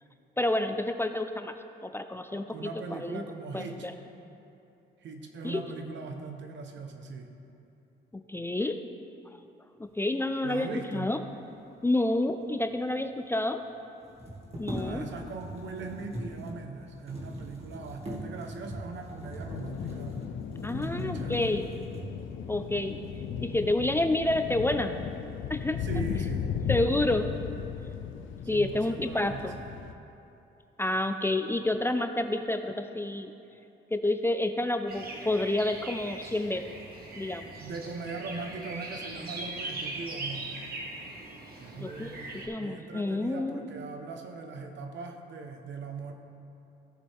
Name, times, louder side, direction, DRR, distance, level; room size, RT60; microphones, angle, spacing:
voice 1, 0.4-1.5 1.8-2.6 2.9-3.2 3.5-3.9 5.4-5.6 8.1-8.8 10.0-11.2 11.8-13.6 14.6-15.0 20.6-21.7 22.5-23.0 23.4-25.0 25.5-25.8 26.7-27.3 28.5-29.6 30.8-33.3 33.9-36.6 37.2-37.5 41.8-42.2 42.5-43.7, left 1 dB, 10° left, 7 dB, 0.4 m, -29 dB
voice 2, 2.5-3.9 5.0-7.3 10.4-11.1 14.7-20.2 20.6-21.5 25.8-26.5 28.5-29.7 37.6-40.5 41.6-46.1, right 4 dB, 65° right, 5 dB, 1.1 m, -40 dB
sound 1, 12.5-12.6 12.8-12.9 14.0-22.4 23.0-23.2 23.6-24.2 24.6-25.1, equal, 30° right, 2.0 m, -41 dB
sound 2, 19.5-29.9, left 8 dB, 75° left, 0.6 m, -36 dB
sound 3, 34.9-42.5, right 2 dB, 50° right, 1.8 m, -40 dB
16.0 x 6.8 x 3.6 m, 2.9 s
cardioid pair, 90°, 20 cm